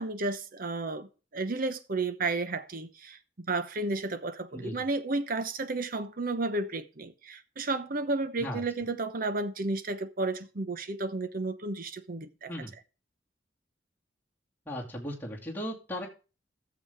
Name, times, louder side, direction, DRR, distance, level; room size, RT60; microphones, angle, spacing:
voice 1, 0.0-12.5, right 3 dB, 50° right, 0.9 m, -32 dB
voice 2, 4.5-4.9 8.4-8.6 12.5-12.7 14.7-16.1, equal, 10° left, 2.5 m, -37 dB
13.0 x 7.1 x 3.5 m
head